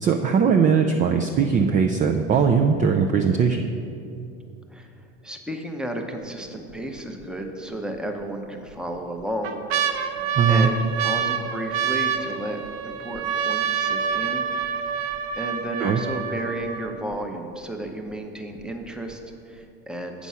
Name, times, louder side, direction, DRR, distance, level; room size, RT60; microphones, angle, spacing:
voice 1, 0.0-3.6 10.4-10.7 15.8-16.0, right 6 dB, 25° right, 3 dB, 0.4 m, -20 dB
voice 2, 5.2-10.2 10.5-14.9 15.4-20.3, right 1 dB, 5° right, 3 dB, 0.7 m, -33 dB
sound 1, 6.2-6.7 7.2-7.3 8.2-8.7 9.2-17.1 17.9-18.0 18.1-18.6 19.1-19.2, right 7 dB, 75° right, 0.8 m, -27 dB
8.3 x 6.1 x 5.5 m, 2.5 s
supercardioid pair, 120°, 30 cm